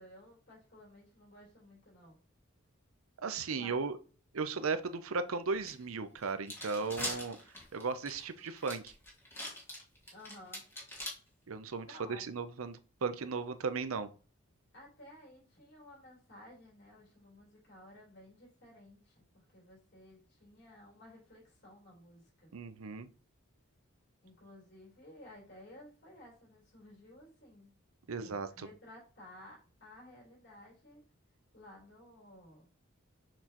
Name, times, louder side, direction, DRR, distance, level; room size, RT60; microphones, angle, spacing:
voice 1, 0.0-2.2 3.6-3.8 10.1-10.6 11.8-12.2 14.7-22.5 24.2-27.7 28.2-31.0 31.5-32.7, left 1 dB, 55° left, -3 dB, 3.8 m, -55 dB
voice 2, 3.2-4.0 4.3-7.4 7.7-8.9 11.5-14.1 22.5-23.1 28.1-28.5, right 4 dB, 75° right, 10 dB, 0.6 m, -36 dB
sound 1, 5.6-5.7 6.2-11.1, left 1 dB, 10° left, 2.0 m, -41 dB
6.5 x 5.9 x 3.0 m, 0.37 s
head